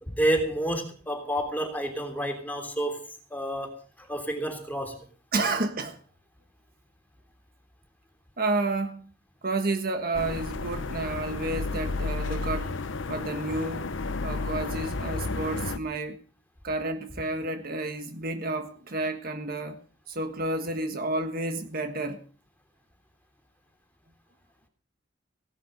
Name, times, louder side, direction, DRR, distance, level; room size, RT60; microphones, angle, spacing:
voice 1, 0.0-3.0 3.3-5.0, right 1 dB, 10° left, 3.3 m, -29 dB
voice 2, 5.3-6.0 8.4-9.1 9.4-12.8 13.1-13.9 14.2-16.2 16.6-19.8 20.1-22.2, right 2 dB, 50° right, 1.5 m, -30 dB
sound 1, 10.1-15.8, left 3 dB, 80° left, 0.9 m, -32 dB
16.5 x 11.5 x 5.2 m
head